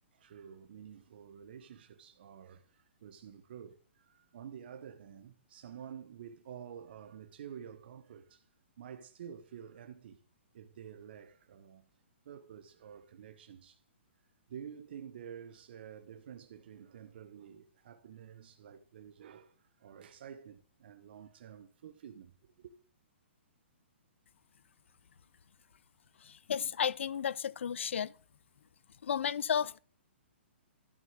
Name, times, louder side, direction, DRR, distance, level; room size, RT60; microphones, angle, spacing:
voice 1, 0.1-8.5 8.8-10.2 10.5-11.9 12.2-13.8 14.5-22.7, right 8 dB, 50° right, 1.1 m, -50 dB
voice 2, 26.2-28.1 29.0-29.8, left 8 dB, 75° left, 0.6 m, -33 dB
12.5 x 6.6 x 5.0 m
hypercardioid pair, 165°, 7 cm